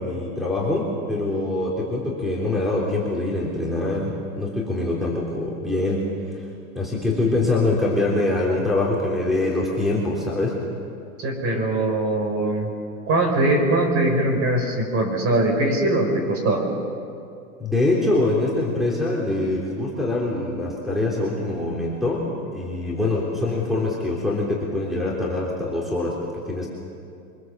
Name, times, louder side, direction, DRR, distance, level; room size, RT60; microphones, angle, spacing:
voice 1, 0.0-6.5 6.8-10.6 17.6-26.7, left 2 dB, ahead, -3 dB, 3.5 m, -24 dB
voice 2, 11.2-12.7 13.1-16.6, right 2 dB, 30° right, 3 dB, 5.5 m, -21 dB
24.5 x 21.5 x 7.4 m, 2.5 s
hypercardioid pair, 125°, 44 cm